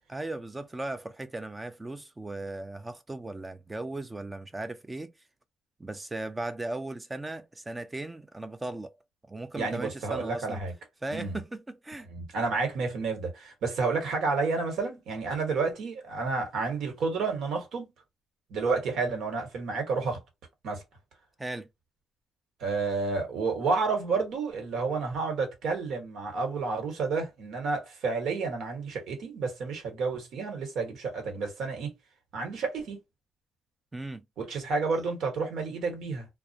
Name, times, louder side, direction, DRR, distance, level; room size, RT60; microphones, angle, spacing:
voice 1, 0.1-5.1 5.8-8.9 9.3-10.6 11.0-12.1 21.4-21.7 33.9-34.2, right 2 dB, 20° right, 0.4 m, -37 dB
voice 2, 9.6-10.7 11.1-11.4 12.1-17.9 18.5-20.2 20.6-20.8 22.6-31.9 32.3-33.0 34.4-36.3, right 4 dB, 75° right, 1.1 m, -30 dB
2.3 x 2.0 x 2.7 m
cardioid pair, 90°, 0 cm